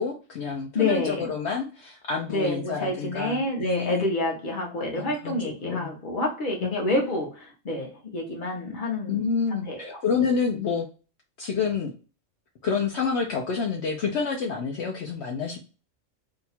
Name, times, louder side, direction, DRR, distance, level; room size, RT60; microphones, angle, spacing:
voice 1, 0.0-4.1 4.9-5.9 6.6-6.7 9.1-10.9 11.4-11.9 12.6-15.6, left 5 dB, 65° left, 0.9 m, -28 dB
voice 2, 0.7-1.3 2.3-10.2, left 2 dB, 45° left, 1.1 m, -28 dB
2.8 x 2.3 x 4.1 m
omnidirectional pair, 1.2 m